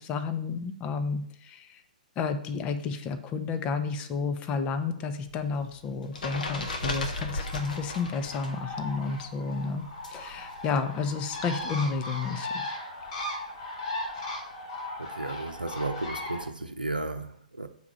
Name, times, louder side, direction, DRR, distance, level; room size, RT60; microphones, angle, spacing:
voice 1, 0.0-1.8 2.2-9.8 10.1-12.7, left 5 dB, 25° left, 0.9 m, -31 dB
sound 1, 5.3-8.6 8.9-10.8, left 2 dB, 65° left, 1.8 m, -36 dB
Bird, 7.2-16.4, left 1 dB, 50° left, 4.0 m, -38 dB
voice 2, 15.0-17.7, right 2 dB, 85° right, 0.7 m, -34 dB
6.8 x 4.9 x 6.9 m
figure-of-eight pair, 120°, 5 cm